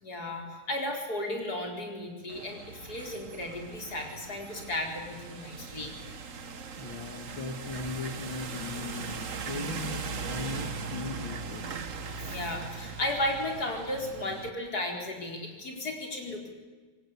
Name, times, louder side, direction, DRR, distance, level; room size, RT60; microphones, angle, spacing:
voice 1, 0.0-5.9 12.1-16.5, left 1 dB, 45° left, 2 dB, 5.1 m, -34 dB
sound 1, 2.3-14.5, right 5 dB, 40° right, 1.5 m, -39 dB
voice 2, 6.8-11.7, left 3 dB, 70° left, 4 dB, 2.7 m, -38 dB
25.5 x 24.0 x 8.3 m, 1.4 s
omnidirectional pair, 2.3 m